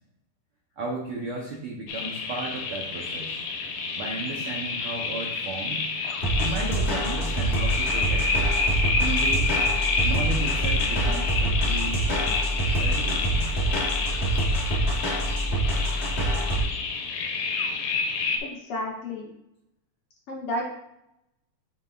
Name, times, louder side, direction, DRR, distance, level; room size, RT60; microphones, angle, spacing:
voice 1, 0.8-3.4 4.0-5.9 6.4-8.5 9.0-9.6 10.0-12.4 12.8-13.5, right 3 dB, 85° right, -1 dB, 1.2 m, -34 dB
sound 1, 1.9-18.4, left 4 dB, 85° left, 2.3 m, -29 dB
sound 2, 6.2-16.6, right 1 dB, 40° left, 0.9 m, -26 dB
voice 2, 18.4-19.3 20.3-20.7, left 1 dB, 65° left, -3 dB, 1.6 m, -31 dB
7.9 x 4.9 x 2.4 m, 0.81 s
omnidirectional pair, 3.6 m